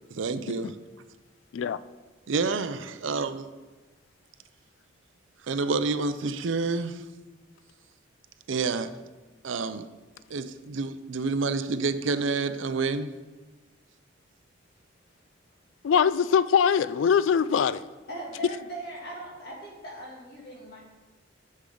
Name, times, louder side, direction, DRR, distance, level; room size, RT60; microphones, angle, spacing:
voice 1, 0.1-0.8 2.3-3.5 5.5-7.0 8.5-8.9 9.4-9.9 10.3-13.1, right 4 dB, 80° right, 11 dB, 0.5 m, -28 dB
voice 2, 15.8-17.8, left 7 dB, 80° left, 15 dB, 0.3 m, -22 dB
voice 3, 18.1-20.8, right 1 dB, 55° left, -4 dB, 2.5 m, -39 dB
11.5 x 6.6 x 3.9 m, 1.2 s
head